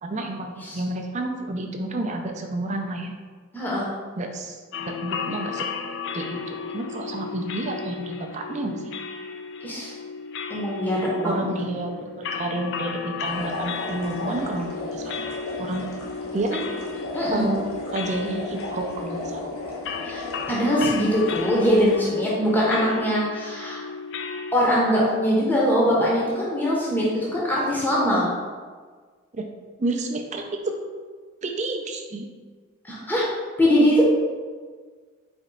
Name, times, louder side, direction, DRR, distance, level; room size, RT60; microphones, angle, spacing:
voice 1, 0.0-3.1 4.2-5.7 6.1-8.8 11.2-15.2 15.6-15.9 16.3-16.7 17.3-17.6 17.9-19.5 29.3-29.5 29.8-30.7 31.4-32.2, right 2 dB, 35° right, 3 dB, 0.4 m, -30 dB
voice 2, 3.5-3.9 9.6-9.9 10.5-11.4 17.1-17.4 20.0-23.8 24.5-28.3 32.8-33.3 33.6-34.0, equal, 10° left, -6 dB, 0.7 m, -22 dB
sound 1, 4.7-24.5, left 5 dB, 55° left, 0.3 m, -34 dB
sound 2, 13.2-22.0, left 1 dB, 85° left, 0.9 m, -35 dB
4.3 x 3.0 x 3.8 m, 1.5 s
head